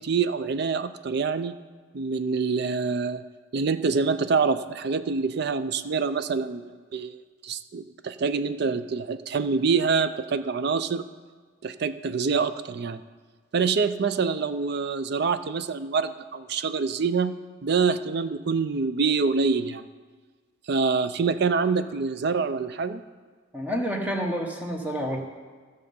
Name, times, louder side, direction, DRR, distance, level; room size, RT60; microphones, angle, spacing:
voice 1, 0.0-1.6 1.9-3.2 3.5-7.2 7.4-11.0 11.6-13.0 13.5-17.4 17.6-19.8 20.7-23.0, right 5 dB, 55° right, 12 dB, 0.4 m, -26 dB
voice 2, 23.5-25.2, equal, 10° right, 1 dB, 1.1 m, -29 dB
14.0 x 6.6 x 5.4 m, 1.5 s
head